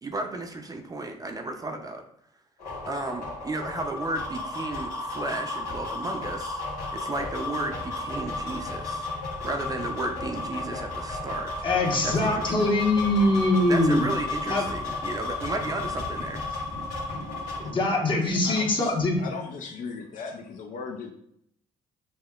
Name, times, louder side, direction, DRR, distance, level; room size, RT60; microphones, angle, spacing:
voice 1, 0.0-2.0 2.9-6.6 6.9-9.1 9.4-11.7 12.0-12.8 13.6-16.6, right 2 dB, 25° right, 4 dB, 0.5 m, -34 dB
sound 1, 2.6-17.7, left 2 dB, 90° left, 1.1 m, -33 dB
voice 2, 11.6-14.0 14.5-14.6 17.6-19.3, left 2 dB, 35° left, -1 dB, 1.0 m, -23 dB
voice 3, 18.2-21.1, left 5 dB, 65° left, 4 dB, 0.4 m, -38 dB
5.4 x 2.1 x 2.3 m, 0.73 s
supercardioid pair, 70°, 15 cm